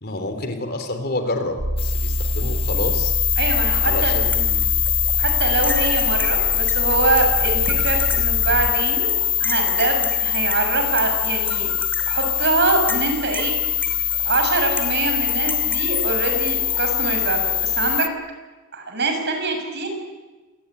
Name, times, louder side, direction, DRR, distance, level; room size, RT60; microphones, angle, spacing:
voice 1, 0.0-3.1 3.8-4.7, left 2 dB, 50° left, 7 dB, 3.4 m, -28 dB
sound 1, 1.6-8.7, equal, 90° right, 2.4 m, -26 dB
sound 2, 1.8-18.1, left 9 dB, 25° left, 0.8 m, -23 dB
voice 2, 3.4-4.1 5.2-9.1 9.4-11.7 12.1-13.5 14.2-18.1 18.7-19.9, right 3 dB, 55° right, 4 dB, 6.7 m, -23 dB
sound 3, 4.0-18.0, left 2 dB, 10° left, 2.8 m, -34 dB
27.0 x 19.0 x 10.0 m, 1.2 s
head